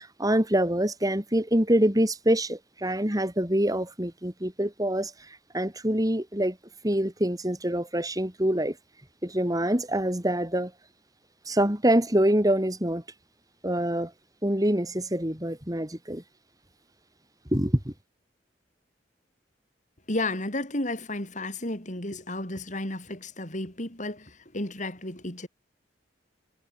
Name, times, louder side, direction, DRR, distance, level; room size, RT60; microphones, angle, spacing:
voice 1, 0.0-6.6 6.8-8.8 9.2-10.7 11.5-13.0 13.6-14.1 14.4-16.2 17.5-17.9, right 1 dB, 20° right, 4.6 m, -25 dB
voice 2, 20.1-25.5, left 2 dB, 45° left, 6.9 m, -32 dB
head